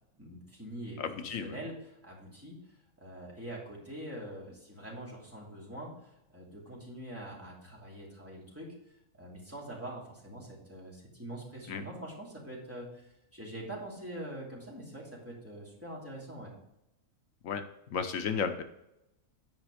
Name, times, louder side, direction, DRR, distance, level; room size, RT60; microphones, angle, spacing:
voice 1, 0.2-1.0 1.4-2.6 3.0-8.7 9.1-12.9 13.3-16.5, right 1 dB, 10° right, -5 dB, 2.8 m, -44 dB
voice 2, 1.0-1.6 11.7-11.8 17.4-17.6 17.9-18.6, left 6 dB, 80° left, 8 dB, 1.1 m, -33 dB
9.6 x 5.0 x 5.0 m, 0.85 s
omnidirectional pair, 1.4 m